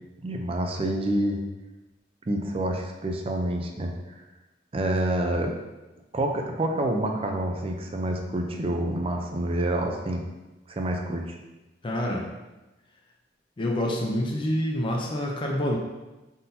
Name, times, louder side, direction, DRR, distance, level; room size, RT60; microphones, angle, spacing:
voice 1, 0.2-1.4 2.3-3.9 4.7-5.5 6.1-10.2 10.7-11.4, right 1 dB, 30° right, 3 dB, 0.4 m, -27 dB
voice 2, 11.8-12.3 13.6-15.8, left 1 dB, 30° left, -1 dB, 0.4 m, -27 dB
4.1 x 3.7 x 2.6 m, 1.1 s
head